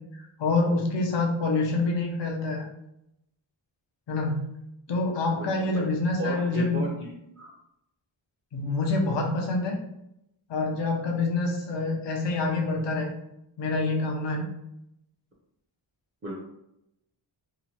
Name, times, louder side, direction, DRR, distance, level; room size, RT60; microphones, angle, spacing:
voice 1, 0.2-2.7 4.1-4.4 4.9-6.8 8.5-9.8 10.5-13.1 13.6-14.5, left 3 dB, 60° left, 0 dB, 0.6 m, -26 dB
voice 2, 5.4-5.9 6.2-7.5 16.2-16.4, right 1 dB, 30° right, -3 dB, 0.5 m, -34 dB
2.8 x 2.1 x 2.8 m, 0.82 s
wide cardioid pair, 80°, 49 cm